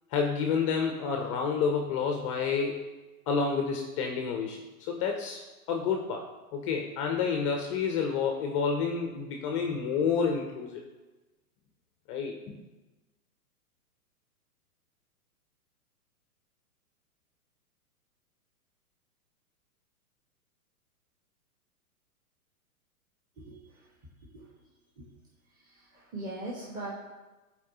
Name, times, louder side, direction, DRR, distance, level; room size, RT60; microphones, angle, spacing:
voice 1, 0.1-2.8 3.3-5.4 5.7-6.2 6.5-10.8 12.1-12.6, left 5 dB, 20° left, 3 dB, 0.4 m, -29 dB
voice 2, 25.9-26.9, right 2 dB, 15° right, -6 dB, 1.4 m, -39 dB
11.5 x 4.7 x 2.7 m, 1.2 s
hypercardioid pair, 115°, 46 cm